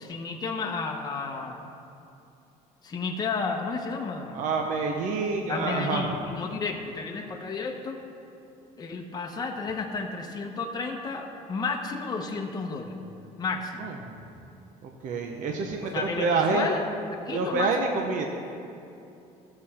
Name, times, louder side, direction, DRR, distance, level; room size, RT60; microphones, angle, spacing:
voice 1, 0.0-1.6 2.8-4.4 5.5-8.0 8.8-13.0 13.4-13.9 15.9-16.8 17.1-18.0, left 4 dB, 25° left, 1 dB, 0.9 m, -32 dB
voice 2, 4.3-6.1 13.8-13.9 14.8-16.7 17.3-18.2, right 4 dB, 55° right, 2 dB, 0.9 m, -27 dB
13.5 x 6.8 x 4.3 m, 2.7 s
cardioid pair, 115°, 15 cm